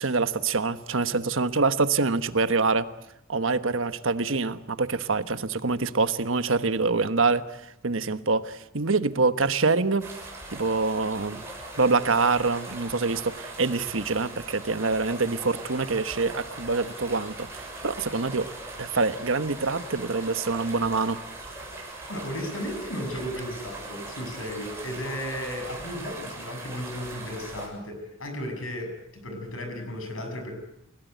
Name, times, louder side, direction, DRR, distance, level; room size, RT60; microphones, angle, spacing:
voice 1, 0.0-2.9 3.3-10.1 10.5-11.4 11.8-18.5 18.8-21.2, right 4 dB, 70° right, 11 dB, 1.2 m, -25 dB
sound 1, 10.0-27.7, right 2 dB, 15° right, 7.1 m, -40 dB
voice 2, 22.1-30.5, equal, 80° left, 6 dB, 7.0 m, -35 dB
30.0 x 17.5 x 9.3 m, 0.82 s
head